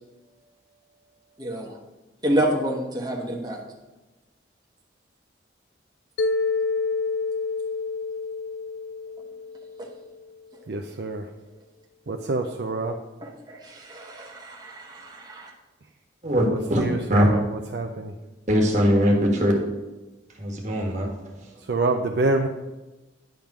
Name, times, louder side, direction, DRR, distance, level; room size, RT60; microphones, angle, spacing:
voice 1, 1.4-1.8 2.2-3.6 9.8-9.9 13.2-15.5, right 1 dB, 20° right, -1 dB, 1.0 m, -28 dB
Mallet percussion, 6.2-10.3, left 4 dB, 80° left, 0.4 m, -28 dB
voice 2, 10.7-11.3 12.1-13.0 16.5-18.1 21.7-22.5, right 2 dB, 60° right, 4 dB, 0.5 m, -27 dB
voice 3, 16.2-16.8 17.1-17.3 18.5-19.5 20.3-21.6, equal, 40° right, 0 dB, 1.5 m, -21 dB
10.5 x 3.6 x 5.9 m, 1.1 s
head